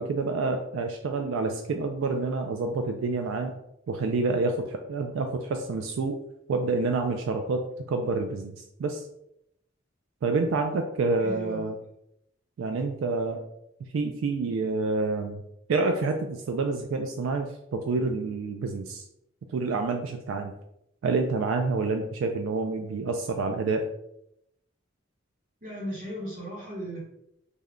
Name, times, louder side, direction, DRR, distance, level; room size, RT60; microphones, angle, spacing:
voice 1, 0.0-3.5 3.9-6.2 6.5-9.1 10.2-11.7 12.6-13.4 13.9-15.4 15.7-19.1 19.5-20.5 21.0-23.8, right 3 dB, 85° right, 5 dB, 0.3 m, -28 dB
voice 2, 11.2-11.7 25.6-27.0, right 1 dB, 40° right, -4 dB, 0.9 m, -36 dB
3.4 x 2.1 x 3.6 m, 0.81 s
head